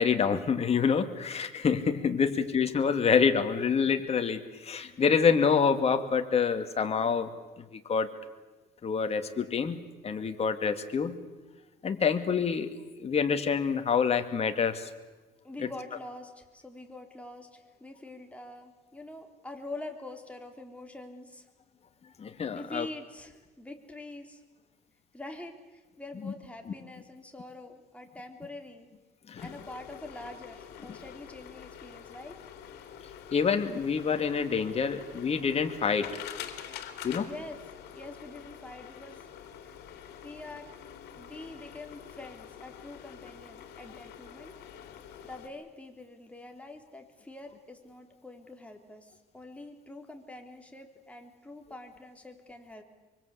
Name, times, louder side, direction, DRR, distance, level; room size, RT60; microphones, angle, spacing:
voice 1, 0.0-7.3 7.6-8.1 8.8-11.2 11.8-14.9 15.6-15.7 22.2-22.9 26.2-26.3 29.3-29.5 33.3-36.1 37.0-37.3, left 6 dB, 40° left, 7 dB, 2.4 m, -27 dB
voice 2, 15.4-21.5 22.5-24.4 25.1-28.9 29.4-32.4 37.2-37.6 37.9-39.2 39.6-39.9 40.2-40.7 41.2-44.5 45.2-52.8, left 2 dB, 5° left, 3 dB, 3.8 m, -45 dB
sound 1, 29.4-45.5, left 9 dB, 75° left, 3.3 m, -46 dB
24.5 x 24.0 x 8.5 m, 1.2 s
cardioid pair, 110°, 17 cm